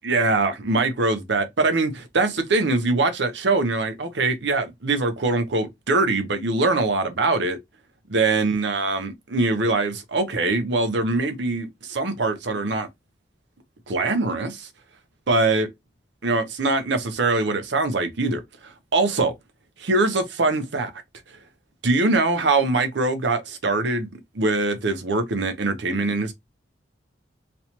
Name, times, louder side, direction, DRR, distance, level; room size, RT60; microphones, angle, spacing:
voice 1, 0.0-7.6 8.1-12.9 13.9-14.7 15.3-15.7 16.2-19.3 19.8-20.9 21.8-24.1 24.3-26.3, right 3 dB, 70° right, 0.7 m, -23 dB
3.1 x 2.9 x 2.7 m
head